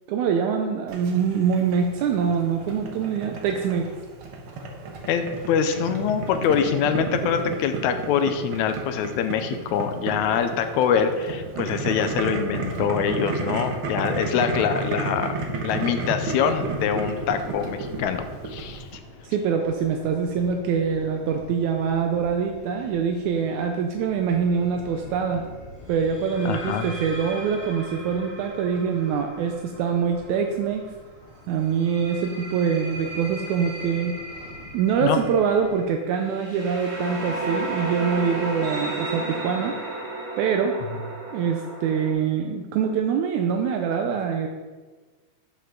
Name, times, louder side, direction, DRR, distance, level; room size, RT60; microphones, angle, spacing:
voice 1, 0.1-3.9 19.2-25.5 25.9-30.8 31.5-34.2 34.7-39.7 40.4-40.8 41.3-44.5, right 6 dB, 80° right, 4 dB, 2.0 m, -24 dB
Boiling, 0.9-19.0, right 3 dB, 60° right, 1.4 m, -32 dB
voice 2, 5.1-15.3 15.6-18.9 26.5-26.9 35.0-35.2, left 7 dB, 80° left, 8 dB, 1.9 m, -24 dB
sound 1, 16.5-35.9, left 1 dB, 60° left, 3.0 m, -46 dB
sound 2, 24.3-24.6 26.1-30.8 31.6-42.1, right 1 dB, 45° right, 3.7 m, -35 dB
11.5 x 5.5 x 3.8 m, 1.4 s
omnidirectional pair, 3.5 m